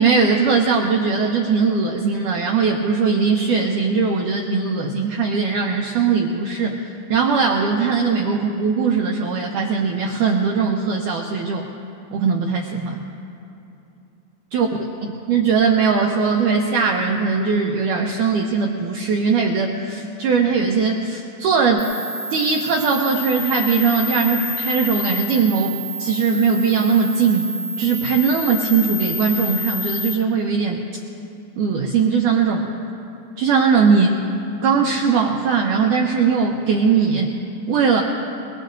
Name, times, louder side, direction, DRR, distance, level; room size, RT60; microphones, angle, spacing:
voice 1, 0.0-6.8 7.1-11.6 12.1-13.0 14.5-14.7 15.3-21.9 22.3-27.5 27.8-30.8 31.6-32.7 33.4-34.2 34.6-37.3 37.7-38.0, right 5 dB, 85° right, 0 dB, 1.8 m, -19 dB
sound 1, 21.8-30.1, left 1 dB, 30° right, 1.0 m, -29 dB
22.5 x 22.0 x 2.6 m, 2.7 s
omnidirectional pair, 4.7 m